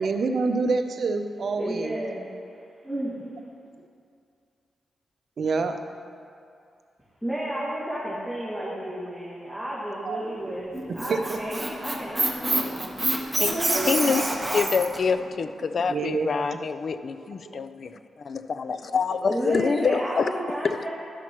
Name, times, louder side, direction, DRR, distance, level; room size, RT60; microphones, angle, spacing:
voice 1, 0.0-1.9 5.4-5.8 10.0-10.5 10.9-11.4 12.5-12.8 13.2-13.3 13.5-14.1 15.9-16.6 17.4-17.6 19.5-19.6, right 4 dB, 65° right, 7 dB, 0.5 m, -28 dB
voice 2, 1.5-2.3 2.8-3.3 7.2-12.9 13.3-14.2 19.3-20.9, right 1 dB, 10° left, -9 dB, 2.0 m, -32 dB
Squeak, 10.7-15.0, right 1 dB, 15° right, 1.0 m, -26 dB
voice 3, 13.9-14.3 14.5-17.9 18.2-20.3 20.6-20.8, left 5 dB, 60° left, 12 dB, 0.3 m, -26 dB
12.0 x 5.9 x 3.0 m, 2.4 s
cardioid pair, 55°, 0 cm